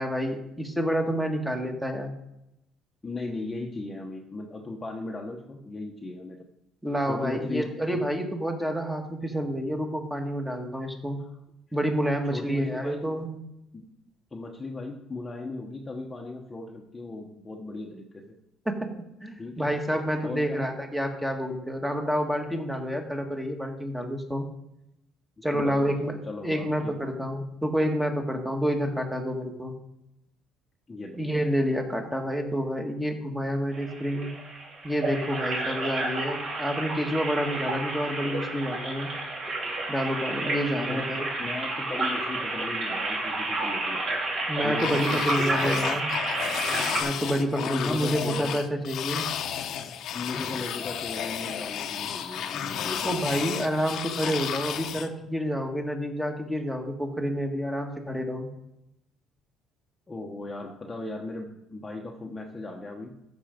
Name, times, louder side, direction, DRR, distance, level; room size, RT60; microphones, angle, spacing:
voice 1, 0.0-2.1 6.8-11.2 11.7-13.3 18.6-18.9 19.2-24.4 25.4-26.1 26.4-29.7 31.2-34.3 34.8-39.1 39.9-41.3 44.5-46.1 47.0-49.3 53.0-58.5, equal, 5° right, 3 dB, 1.6 m, -28 dB
voice 2, 3.0-6.4 7.1-7.7 12.3-13.0 13.7-13.8 14.3-18.4 19.4-19.7 20.2-20.6 25.5-25.9 26.2-27.1 30.9-31.2 40.7-41.1 41.4-44.2 44.6-45.8 47.5-48.6 50.1-53.3 60.1-63.1, left 2 dB, 15° left, 0 dB, 1.1 m, -37 dB
sound 1, 33.7-47.0, right 2 dB, 45° right, 3.1 m, -31 dB
sound 2, 44.8-55.1, left 9 dB, 55° left, 0.9 m, -32 dB
13.5 x 6.1 x 5.2 m, 0.85 s
cardioid pair, 135°, 0 cm